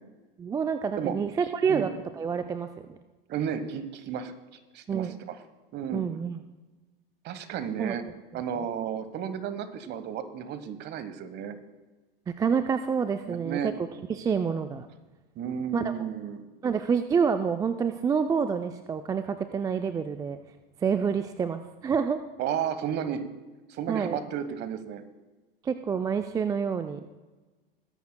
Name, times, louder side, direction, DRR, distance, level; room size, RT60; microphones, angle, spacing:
voice 1, 0.4-3.0 4.9-5.1 5.9-6.4 7.8-8.0 12.3-13.7 14.1-14.9 15.7-15.9 16.6-20.4 20.8-22.2 23.9-24.2 25.6-27.0, right 6 dB, 10° right, 9 dB, 0.4 m, -28 dB
voice 2, 3.3-4.3 4.7-5.3 5.7-6.0 7.2-8.0 8.3-11.6 13.3-13.7 15.4-16.4 22.4-23.2 23.7-25.0, right 8 dB, 35° right, 11 dB, 1.2 m, -33 dB
21.0 x 10.5 x 2.2 m, 1.2 s
hypercardioid pair, 95°, 29 cm